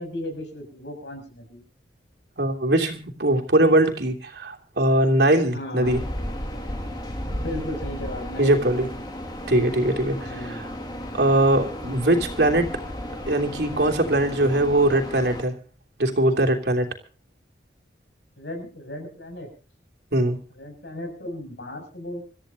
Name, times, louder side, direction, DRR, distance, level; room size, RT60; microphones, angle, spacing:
voice 1, 0.0-1.6 5.5-6.0 7.3-8.9 10.1-10.7 18.4-19.5 20.5-22.2, left 1 dB, 75° left, 4 dB, 7.3 m, -35 dB
voice 2, 2.4-6.0 8.4-8.9 9.5-10.6 11.1-12.7 13.3-15.5 16.0-16.9 20.1-20.4, right 1 dB, 65° right, 3 dB, 3.0 m, -21 dB
sound 1, 5.8-15.4, equal, 25° left, 2.4 m, -34 dB
27.0 x 14.0 x 2.8 m, 0.37 s
head